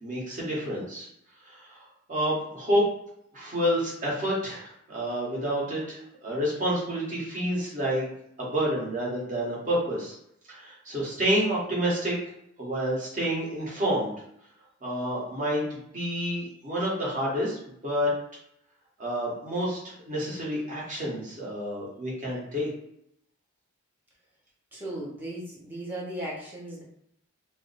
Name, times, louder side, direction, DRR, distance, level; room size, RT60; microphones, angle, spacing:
voice 1, 0.0-1.1 1.4-1.8 2.1-2.8 3.3-8.1 8.4-10.2 10.5-12.1 12.6-14.1 14.8-18.1 19.0-22.7, equal, 40° right, -5 dB, 1.2 m, -29 dB
voice 2, 24.7-26.8, right 1 dB, 10° right, -5 dB, 0.8 m, -36 dB
2.5 x 2.1 x 3.9 m, 0.73 s
head